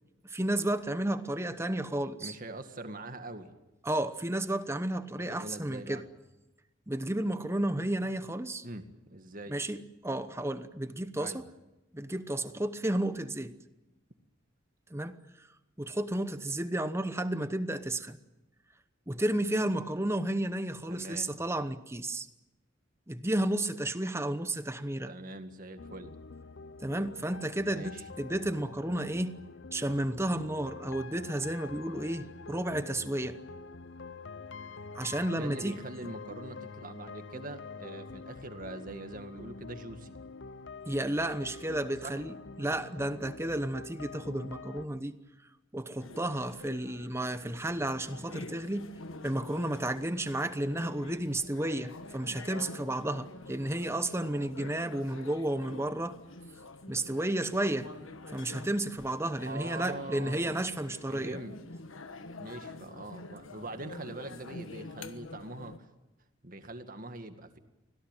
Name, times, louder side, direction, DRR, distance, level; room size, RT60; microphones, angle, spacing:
voice 1, 0.2-2.3 3.8-6.0 6.9-8.6 9.5-11.4 11.9-13.5 14.9-15.2 15.8-18.2 19.1-22.3 23.1-25.1 26.8-29.4 29.7-33.4 34.9-35.8 40.9-45.1 45.7-48.9 49.2-56.2 56.9-57.9 58.3-61.4, right 1 dB, 15° right, 0.9 m, -32 dB
voice 2, 2.2-3.5 5.1-6.1 8.6-9.6 11.2-11.4 20.9-21.4 25.1-26.1 27.7-28.0 35.3-40.2 42.0-42.2 59.5-60.6 61.1-61.6 62.4-65.9 66.4-67.6, right 2 dB, 45° right, 2.0 m, -43 dB
sound 1, 25.8-44.9, left 4 dB, 65° left, 0.8 m, -46 dB
sound 2, 46.0-65.8, left 2 dB, 85° left, 1.4 m, -47 dB
25.5 x 17.5 x 9.1 m
head